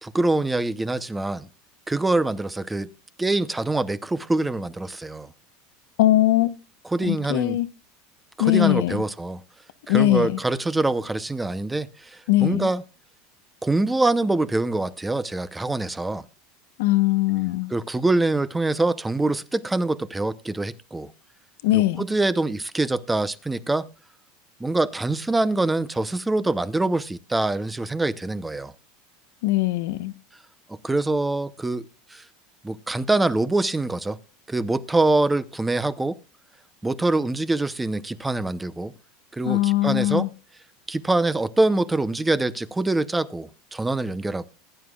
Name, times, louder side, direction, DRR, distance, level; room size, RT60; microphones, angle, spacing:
voice 1, 0.0-1.5 1.9-2.9 3.2-5.3 6.9-7.6 8.4-9.4 9.9-12.8 13.6-16.2 17.7-21.1 21.7-23.9 24.6-28.7 30.8-32.2 32.6-34.2 34.5-36.2 36.8-38.9 39.3-40.3 40.9-44.5, right 2 dB, 10° right, 0.6 m, -24 dB
voice 2, 6.0-6.5 7.0-7.7 8.4-9.0 9.9-10.4 12.3-12.7 16.8-17.7 21.6-22.0 29.4-30.1 39.4-40.3, left 16 dB, 80° left, 0.8 m, -20 dB
20.0 x 9.5 x 2.3 m
supercardioid pair, 140°, 0 cm